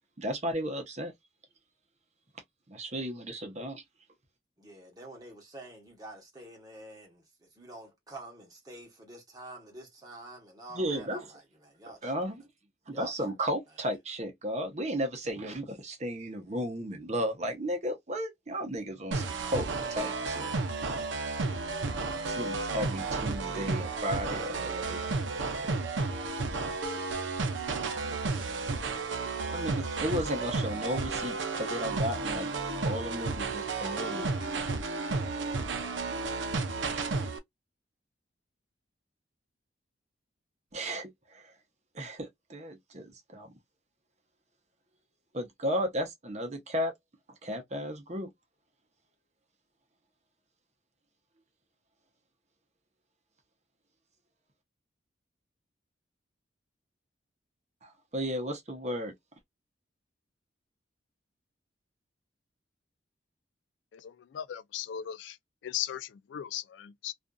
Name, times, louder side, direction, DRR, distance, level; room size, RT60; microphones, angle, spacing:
voice 1, 0.2-1.1 2.7-3.8 10.7-11.2 12.0-12.4 12.9-20.5 22.3-25.8 29.5-32.5 32.8-34.3 40.7-41.5 41.9-43.5 45.3-46.9 47.4-48.3 57.8-59.1, equal, 35° right, 0.7 m, -34 dB
voice 2, 4.6-12.2 12.9-13.4, right 2 dB, 20° right, 1.0 m, -48 dB
sound 1, 19.1-37.4, right 3 dB, 80° right, 0.6 m, -32 dB
voice 3, 63.9-65.4 65.6-67.1, left 11 dB, 75° left, 0.3 m, -37 dB
2.5 x 2.4 x 2.2 m
head